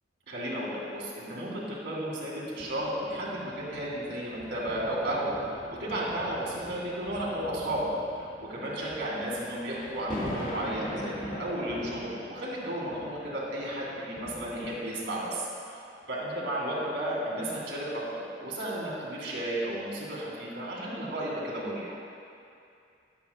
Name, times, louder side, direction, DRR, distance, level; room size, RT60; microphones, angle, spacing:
voice 1, 0.3-7.9 8.1-22.0, right 1 dB, 70° right, -5 dB, 2.7 m, -33 dB
sound 1, 2.5-15.3 16.0-16.2, left 1 dB, 45° left, 1.5 m, -43 dB
20.0 x 8.4 x 2.2 m, 2.5 s
head